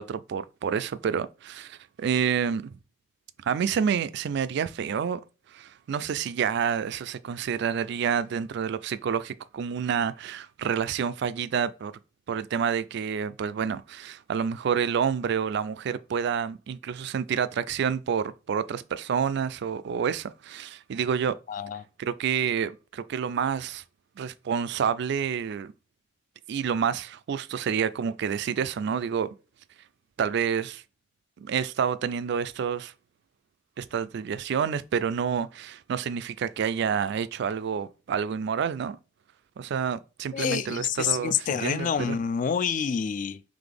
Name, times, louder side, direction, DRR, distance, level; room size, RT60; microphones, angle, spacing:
voice 1, 0.0-2.8 3.4-5.2 5.5-11.9 12.3-21.4 22.0-23.8 24.2-25.7 26.5-29.3 30.2-30.8 31.4-32.9 33.8-39.0 39.6-42.2, right 7 dB, 60° right, 0.3 m, -28 dB
voice 2, 21.5-21.8 40.3-43.4, left 7 dB, 45° left, 0.3 m, -28 dB
4.0 x 3.2 x 3.4 m
head